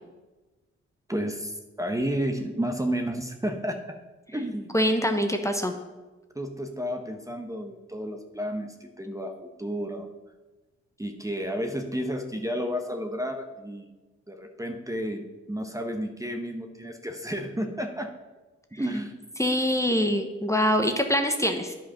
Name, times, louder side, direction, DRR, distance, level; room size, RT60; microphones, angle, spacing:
voice 1, 1.1-4.0 4.3-4.8 6.3-10.1 11.0-13.9 14.3-18.1 18.7-19.3, equal, 10° right, 5 dB, 1.0 m, -32 dB
voice 2, 4.7-5.7 19.4-21.7, equal, 10° left, 5 dB, 1.0 m, -24 dB
9.8 x 5.4 x 5.7 m, 1.2 s
cardioid pair, 60°, 30 cm